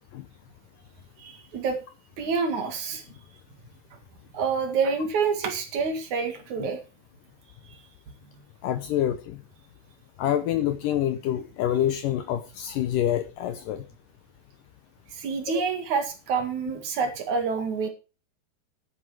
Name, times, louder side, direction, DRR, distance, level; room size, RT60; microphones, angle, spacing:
voice 1, 1.2-1.8 2.2-3.0 4.3-6.8 7.7-7.8 15.1-17.9, right 5 dB, 55° right, 6 dB, 2.8 m, -27 dB
voice 2, 8.6-9.4 10.2-13.8, left 11 dB, 80° left, 11 dB, 1.9 m, -26 dB
10.0 x 9.7 x 4.7 m, 0.32 s
omnidirectional pair, 4.9 m